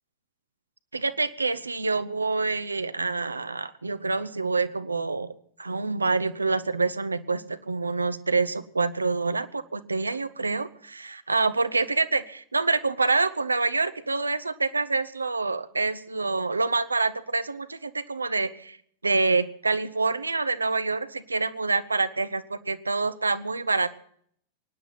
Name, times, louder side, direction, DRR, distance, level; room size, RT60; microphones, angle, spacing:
voice 1, 0.9-18.8 19.0-23.9, right 3 dB, 80° right, 13 dB, 0.8 m, -27 dB
24.0 x 9.9 x 5.8 m, 0.65 s
figure-of-eight pair, 90°, 0 cm